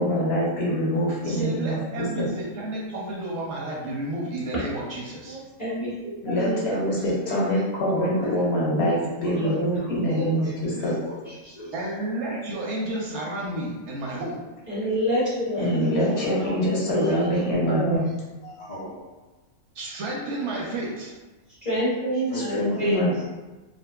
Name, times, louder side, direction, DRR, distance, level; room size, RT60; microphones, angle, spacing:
voice 1, 0.0-2.3 6.2-10.9 15.6-18.1 22.3-23.2, equal, 55° left, -6 dB, 0.9 m, -25 dB
voice 2, 1.2-5.4 11.7-14.4 19.7-21.1, right 1 dB, 65° right, -3 dB, 0.7 m, -31 dB
voice 3, 5.3-6.7 7.2-7.4 8.7-8.9 9.4-9.6 10.2-10.3 14.7-18.0 21.6-23.0, equal, 25° left, -11 dB, 0.8 m, -28 dB
voice 4, 6.3-7.6 7.9-8.4 9.2-11.9 14.8-14.9 15.5-16.5 17.3-17.4 18.0-18.1 18.4-19.0 22.1-23.1, equal, 70° left, -10 dB, 0.3 m, -37 dB
2.6 x 2.5 x 2.2 m, 1.2 s
omnidirectional pair, 1.5 m